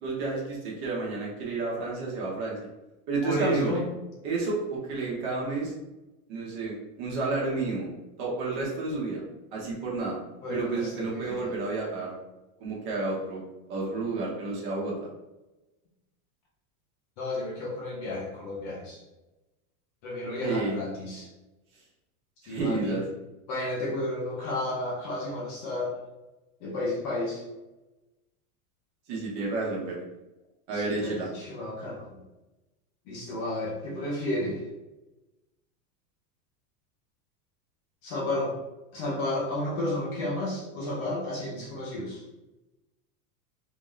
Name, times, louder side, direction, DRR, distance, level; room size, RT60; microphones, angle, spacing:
voice 1, 0.0-2.7 3.1-3.8 4.2-5.7 6.3-7.9 8.2-9.2 9.5-10.2 10.5-12.2 12.6-13.4 13.7-15.1 20.4-20.8 22.4-23.0 29.1-30.0 30.7-31.3, right 3 dB, 45° right, -3 dB, 1.1 m, -30 dB
voice 2, 3.2-3.9 10.4-11.5 17.2-19.0 20.0-21.3 22.5-22.9 23.5-26.0 26.6-27.4 30.7-32.0 33.1-34.6 38.0-38.5 38.9-42.2, left 1 dB, 30° left, -4 dB, 0.6 m, -32 dB
3.5 x 2.6 x 3.1 m, 1.0 s
supercardioid pair, 170°, 47 cm